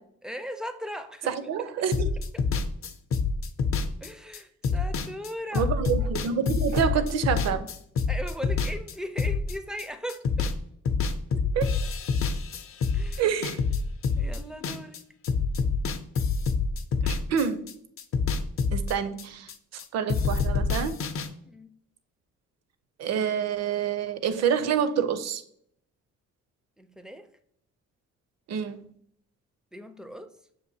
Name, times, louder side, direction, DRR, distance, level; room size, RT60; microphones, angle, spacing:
voice 1, 0.2-1.5 2.3-2.4 4.0-5.7 8.1-10.5 12.9-13.2 14.2-15.0 21.4-21.7 26.8-27.3 29.7-30.3, equal, ahead, 0.4 m, -38 dB
voice 2, 1.3-2.1 5.5-7.7 11.5-11.7 13.2-13.6 17.0-17.7 18.7-19.5 19.9-21.0 23.0-25.4 28.5-28.9, right 7 dB, 60° right, 0.5 m, -27 dB
sound 1, 1.9-9.8 10.1-10.6 10.9-15.0 15.2-19.8 20.1-21.3, left 4 dB, 50° left, 0.5 m, -27 dB
6.3 x 2.5 x 2.7 m
cardioid pair, 90°, 30 cm